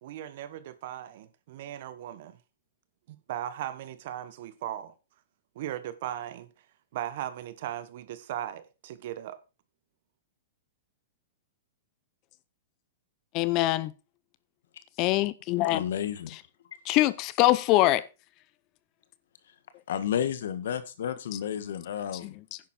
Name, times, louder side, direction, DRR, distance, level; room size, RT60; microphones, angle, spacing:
voice 1, 0.0-2.4 3.1-4.9 5.5-6.5 6.9-9.4, right 12 dB, 60° right, 1.3 m, -37 dB
voice 2, 13.3-13.9 15.0-15.8 16.9-18.1 22.2-22.6, left 16 dB, 40° left, 0.6 m, -24 dB
voice 3, 15.7-16.3 19.9-22.4, left 9 dB, 75° left, 1.6 m, -31 dB
10.5 x 8.6 x 4.4 m
hypercardioid pair, 120°, 0 cm